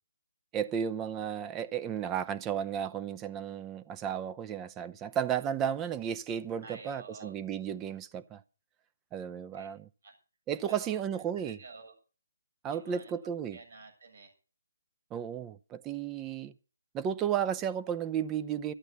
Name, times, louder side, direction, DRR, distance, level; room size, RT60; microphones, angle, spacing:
voice 1, 0.5-8.4 9.1-9.9 10.5-11.6 12.6-13.6 15.1-16.5 16.9-18.7, right 8 dB, 15° right, 0.8 m, -33 dB
voice 2, 6.6-7.3 9.5-9.7 10.0-10.1 10.7-12.0 12.7-13.1 13.5-14.3, right 4 dB, 65° right, 7.3 m, -50 dB
13.5 x 8.8 x 7.9 m
figure-of-eight pair, 150°, 0 cm